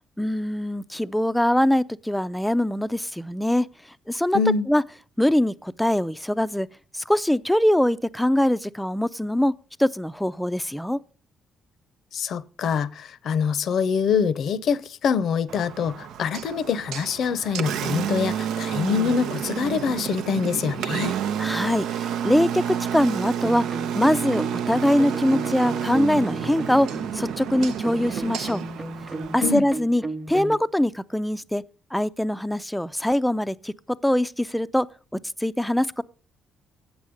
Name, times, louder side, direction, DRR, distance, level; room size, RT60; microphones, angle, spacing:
voice 1, 0.2-3.7 4.1-4.4 4.7-4.8 5.2-6.7 6.9-9.5 9.8-11.0 21.4-22.6 22.9-23.7 23.9-26.9 27.1-28.6 29.3-30.0 30.3-31.6 31.9-33.7 34.0-34.9 35.1-36.0, left 1 dB, 5° left, 0.4 m, -23 dB
voice 2, 4.3-4.7 12.1-21.1 29.4-29.6, left 6 dB, 65° left, 0.6 m, -25 dB
Engine, 15.5-29.5, right 9 dB, 80° right, 0.5 m, -30 dB
sound 1, 23.4-30.6, right 2 dB, 15° right, 1.0 m, -34 dB
8.2 x 7.1 x 6.3 m
cardioid pair, 80°, 0 cm